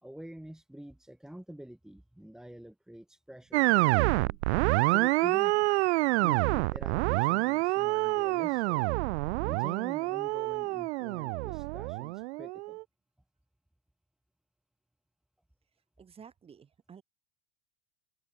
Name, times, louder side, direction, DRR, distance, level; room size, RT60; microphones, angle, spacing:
voice 1, 0.0-4.4 4.9-5.6 6.2-8.8 9.4-12.8, right 1 dB, ahead, 5.4 m, -47 dB
sound 1, 3.5-12.8, right 22 dB, 75° right, 0.5 m, -27 dB
voice 2, 16.0-17.0, right 7 dB, 15° right, 7.9 m, -52 dB
supercardioid pair, 170°, 33 cm